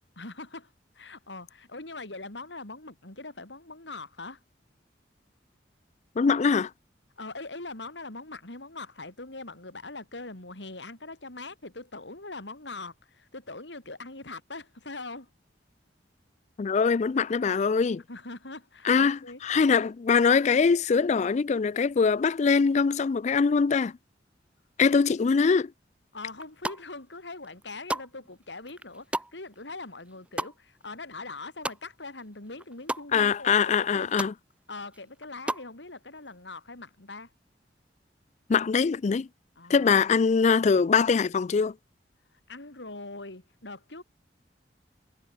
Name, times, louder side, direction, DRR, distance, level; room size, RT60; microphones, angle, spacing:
voice 1, 0.2-4.4 7.2-15.3 18.1-19.4 26.1-34.2 34.7-37.3 39.6-40.1 42.5-44.0, left 3 dB, 80° left, 4.1 m, -42 dB
voice 2, 6.2-6.7 16.6-18.0 18.8-23.9 24.8-25.7 33.1-34.3 38.5-39.3 39.7-41.7, left 5 dB, 40° left, 0.4 m, -23 dB
sound 1, 26.3-27.1 27.4-32.2 32.5-33.1 33.5-33.6 33.8-34.3 34.8-35.7, right 1 dB, 5° right, 1.1 m, -35 dB
head